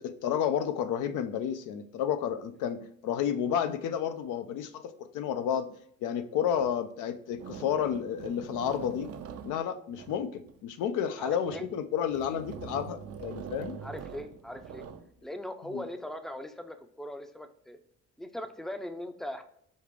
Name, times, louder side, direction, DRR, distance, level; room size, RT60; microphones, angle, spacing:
voice 1, 0.0-5.7 6.0-9.1 9.4-13.8 15.7-15.8, left 8 dB, 90° left, 9 dB, 0.5 m, -31 dB
sound 1, 6.6-6.7 7.3-10.6 11.2-11.7 12.1-15.1, right 7 dB, 50° right, 0.5 m, -43 dB
voice 2, 11.2-11.7 13.8-14.9 15.2-17.8 18.2-19.4, left 1 dB, ahead, 7 dB, 0.4 m, -40 dB
5.2 x 2.4 x 3.2 m, 0.68 s
cardioid pair, 90°, 30 cm